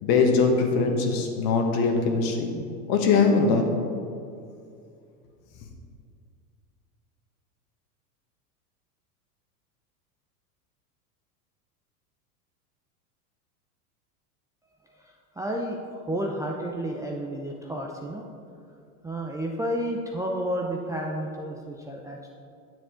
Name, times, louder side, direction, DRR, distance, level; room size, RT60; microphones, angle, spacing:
voice 1, 0.0-2.5 2.9-3.6, left 4 dB, 50° left, 3 dB, 1.5 m, -22 dB
voice 2, 15.3-18.3 19.0-22.3, right 1 dB, 10° right, -1 dB, 0.4 m, -31 dB
9.3 x 7.5 x 3.7 m, 2.4 s
hypercardioid pair, 105°, 46 cm